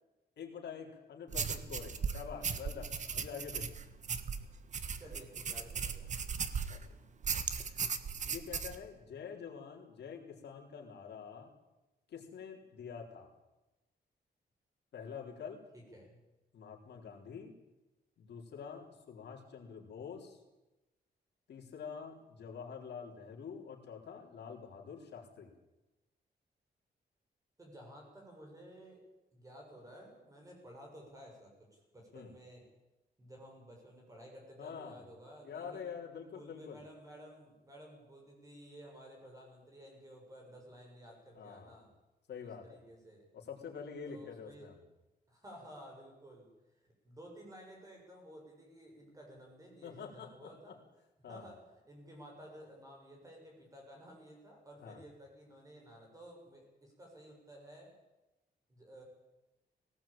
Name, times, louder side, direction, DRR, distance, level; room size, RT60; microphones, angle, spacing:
voice 1, 0.4-3.8 6.7-6.8 8.2-11.5 12.1-13.3 14.9-15.6 16.5-17.5 18.2-20.4 21.5-25.5 32.1-32.3 34.6-35.0 35.4-36.8 41.3-41.8 42.3-42.8 43.3-44.8 49.8-50.8 51.2-51.5 54.8-55.0, left 6 dB, 80° left, 0 dB, 4.0 m, -46 dB
sound 1, 1.3-6.8 7.2-8.8, right 6 dB, 45° right, 1.4 m, -37 dB
voice 2, 5.0-6.1 15.7-16.2 27.6-29.0 29.3-32.7 33.2-35.9 36.3-41.9 42.4-43.2 44.1-44.7 45.3-46.5 46.8-50.8 51.3-57.9 58.7-59.0, equal, 20° right, 0 dB, 7.1 m, -54 dB
19.0 x 18.0 x 8.9 m, 1.0 s
wide cardioid pair, 165°, 17 cm